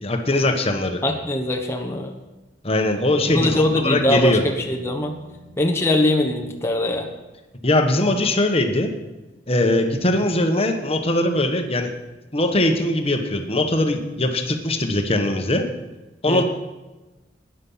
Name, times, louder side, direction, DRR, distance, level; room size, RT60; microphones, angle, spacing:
voice 1, 0.0-1.0 2.6-4.4 7.6-8.9 9.5-11.9 12.3-15.7 16.2-16.4, left 1 dB, 35° left, 6 dB, 1.3 m, -21 dB
voice 2, 1.0-2.1 3.3-5.2 5.6-7.1 16.3-16.4, left 1 dB, 15° left, 2 dB, 1.1 m, -22 dB
sound 1, 3.3-7.2, left 1 dB, 85° right, 2.3 m, -41 dB
13.0 x 10.0 x 5.7 m, 1.1 s
head